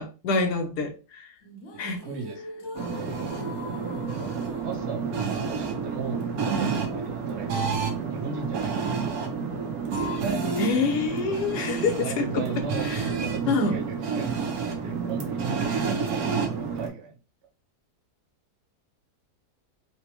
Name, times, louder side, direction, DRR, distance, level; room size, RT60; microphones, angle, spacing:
voice 1, 0.0-1.3 1.8-2.0 10.6-13.1 13.5-13.8, left 4 dB, 80° left, 4 dB, 1.4 m, -27 dB
sound 1, 1.4-7.4, left 2 dB, 55° left, 0.9 m, -43 dB
voice 2, 2.0-2.4 2.9-3.4 4.2-9.1 12.0-12.9 13.2-17.2, right 5 dB, 50° right, 2 dB, 1.0 m, -37 dB
sound 2, 2.7-16.9, right 5 dB, 70° right, 1.1 m, -29 dB
4.1 x 2.2 x 2.9 m, 0.32 s
omnidirectional pair, 1.7 m